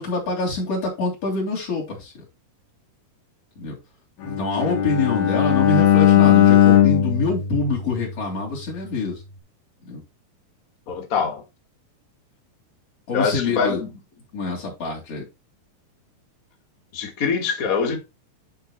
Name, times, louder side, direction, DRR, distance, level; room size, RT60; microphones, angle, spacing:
voice 1, 0.0-2.3 3.6-3.7 4.2-9.2 9.9-10.0 13.1-13.8 14.3-15.2, left 3 dB, 40° left, 4.1 m, -25 dB
Bowed string instrument, 4.3-8.4, left 10 dB, 65° left, 2.2 m, -18 dB
voice 2, 10.9-11.4 13.1-13.9 16.9-18.0, left 5 dB, 90° left, 0.7 m, -24 dB
9.8 x 4.0 x 4.4 m
omnidirectional pair, 4.4 m